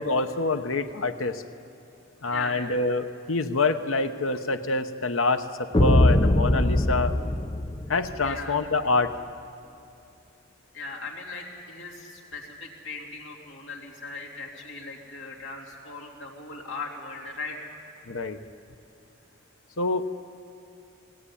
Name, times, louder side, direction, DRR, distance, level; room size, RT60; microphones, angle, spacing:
voice 1, 0.0-1.4 2.2-7.1 7.9-9.1 18.1-18.4 19.8-20.1, left 3 dB, 80° left, 8 dB, 1.0 m, -26 dB
voice 2, 2.3-2.8 8.2-8.6 10.7-17.6, left 4 dB, 60° left, -3 dB, 3.2 m, -38 dB
sound 1, 5.7-8.3, left 1 dB, 25° left, 0.7 m, -21 dB
18.0 x 17.0 x 9.9 m, 2.7 s
head